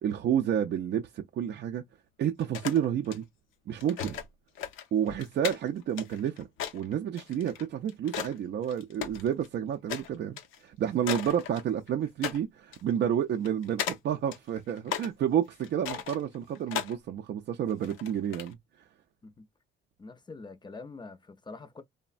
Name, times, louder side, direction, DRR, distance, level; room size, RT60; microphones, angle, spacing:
voice 1, 0.0-1.8 2.2-3.2 3.7-4.2 4.9-6.5 6.7-18.6, right 9 dB, 60° right, 0.4 m, -30 dB
sound 1, 2.4-3.2 3.8-4.3 4.5-8.4 8.6-9.5 9.9-10.1 10.4-10.6 11.0-11.9 12.2-12.4 12.7-12.8 13.4-14.0 14.3-15.1 15.5-16.9 17.7-18.5, left 9 dB, 80° left, 0.6 m, -36 dB
voice 2, 20.0-21.8, left 3 dB, 20° left, 0.5 m, -45 dB
3.1 x 2.1 x 2.4 m
cardioid pair, 90°, 20 cm